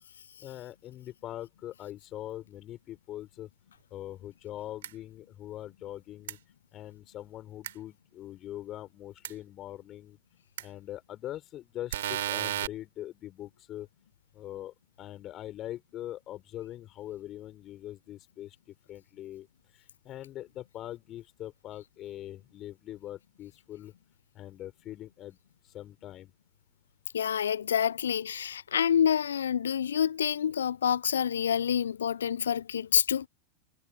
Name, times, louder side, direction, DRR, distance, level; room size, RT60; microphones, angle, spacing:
voice 1, 0.4-3.5 3.9-6.4 6.7-10.2 10.6-13.9 14.3-19.5 19.7-23.9 24.3-25.4 25.6-26.3, left 13 dB, 30° left, 5.1 m, -42 dB
sound 1, 4.8-4.9 6.3-6.4 7.6-7.7 9.2-9.3 10.6-10.7 11.9-12.7, right 12 dB, 60° right, 2.3 m, -32 dB
voice 2, 27.1-33.3, left 8 dB, 65° left, 0.8 m, -27 dB
figure-of-eight pair, 90°, 0 cm